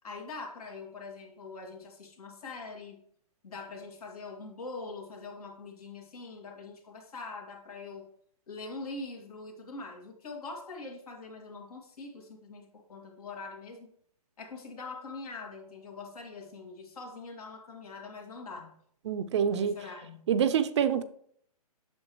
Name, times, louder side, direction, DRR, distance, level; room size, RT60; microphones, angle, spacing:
voice 1, 0.0-3.0 3.4-8.1 8.5-13.9 14.4-18.8 19.5-20.3, left 3 dB, 70° left, 2.4 m, -43 dB
voice 2, 19.1-19.8 20.3-21.0, right 8 dB, 45° right, 0.5 m, -26 dB
8.4 x 6.9 x 3.1 m
hypercardioid pair, 140°, 20 cm